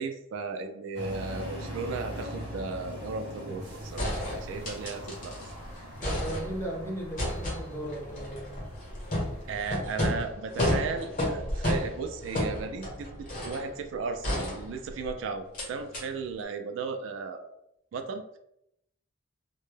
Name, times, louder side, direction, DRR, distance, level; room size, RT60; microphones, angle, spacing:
voice 1, 0.0-5.4 9.5-17.5 17.9-18.4, right 4 dB, 75° right, 6 dB, 0.3 m, -35 dB
sound 1, 0.9-9.7, equal, 55° right, 0.7 m, -42 dB
sound 2, 3.5-3.6 4.0-5.5 5.8-6.8 7.2-13.7 14.2-15.1 15.5-15.7 15.9-16.0, left 1 dB, 40° left, 0.8 m, -32 dB
voice 2, 6.0-8.5, right 1 dB, 10° left, -2 dB, 0.5 m, -36 dB
2.1 x 2.0 x 3.1 m, 0.77 s
head